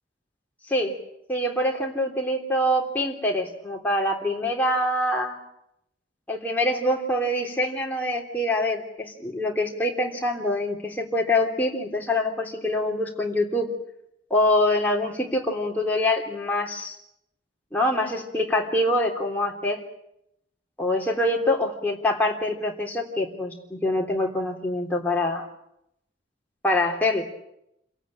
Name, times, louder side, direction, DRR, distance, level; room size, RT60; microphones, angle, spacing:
voice 1, 0.7-1.0 1.3-5.4 6.3-13.7 14.3-16.9 17.7-19.8 20.8-25.5 26.6-27.2, left 1 dB, 10° left, -1 dB, 3.3 m, -25 dB
28.0 x 17.5 x 8.9 m, 0.80 s
head